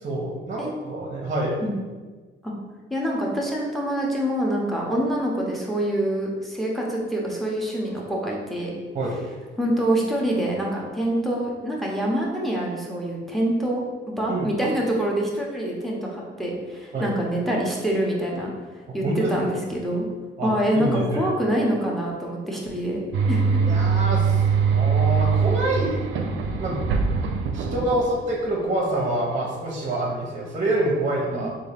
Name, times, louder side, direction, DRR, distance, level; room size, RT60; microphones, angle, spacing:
voice 1, 0.0-1.6 8.9-9.2 14.3-14.5 16.9-17.1 18.9-19.3 20.4-20.5 20.7-21.3 23.6-24.4 24.7-26.0 26.6-26.8 27.5-31.5, right 1 dB, 40° right, -2 dB, 0.7 m, -26 dB
voice 2, 2.9-8.7 9.6-18.5 18.9-20.1 20.4-23.0 23.3-23.8 31.3-31.5, right 1 dB, ahead, -3 dB, 0.8 m, -25 dB
sound 1, 23.1-28.5, right 5 dB, 70° right, 0.4 m, -22 dB
3.6 x 2.4 x 3.4 m, 1.4 s
cardioid pair, 90°, 20 cm